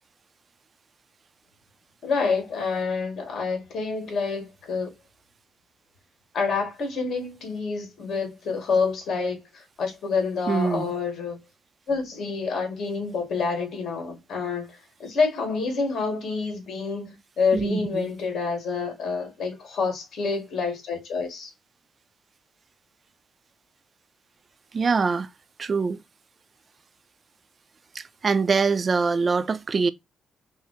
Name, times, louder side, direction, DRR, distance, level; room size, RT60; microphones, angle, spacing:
voice 1, 2.0-4.9 6.3-11.4 11.9-21.5, left 4 dB, 60° left, 1.9 m, -28 dB
voice 2, 10.5-10.9 17.5-18.1 24.7-25.3 25.6-26.0 27.9-29.9, right 4 dB, 35° right, 0.4 m, -24 dB
5.6 x 2.0 x 2.9 m
cardioid pair, 125°, 0 cm